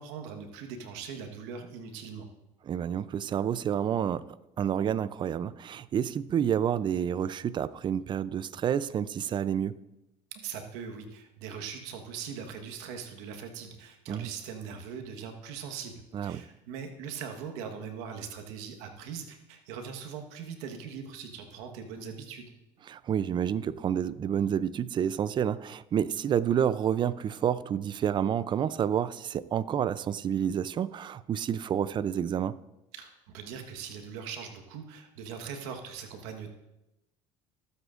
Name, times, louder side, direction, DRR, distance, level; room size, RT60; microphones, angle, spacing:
voice 1, 0.0-2.3 10.3-22.5 32.9-36.5, right 6 dB, 80° right, 1.3 m, -41 dB
voice 2, 2.7-4.2 4.6-9.8 14.1-14.3 16.1-16.4 22.8-32.6, right 9 dB, 35° right, 0.5 m, -29 dB
21.0 x 8.1 x 2.5 m
supercardioid pair, 95°, 13 cm